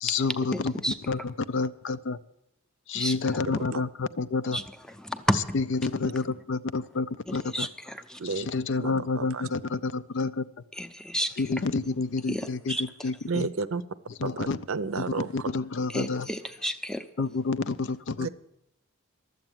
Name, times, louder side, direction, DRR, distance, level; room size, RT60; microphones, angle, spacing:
voice 1, 0.0-0.7 1.1-2.2 2.9-4.6 5.3-7.7 8.3-10.4 11.4-13.5 14.2-14.6 15.0-16.3 17.2-18.3, left 4 dB, 60° left, 14 dB, 0.5 m, -29 dB
voice 2, 0.5-0.9 2.9-3.1 4.5-4.6 5.0-5.4 7.3-8.2 10.8-11.3 12.3-12.8 15.9-17.0, equal, 5° left, 7 dB, 0.6 m, -31 dB
voice 3, 3.5-3.8 8.2-8.5 8.8-9.5 13.3-13.8 14.2-15.5 18.2-18.3, right 4 dB, 70° right, 14 dB, 0.6 m, -32 dB
12.0 x 8.0 x 8.9 m, 0.80 s
head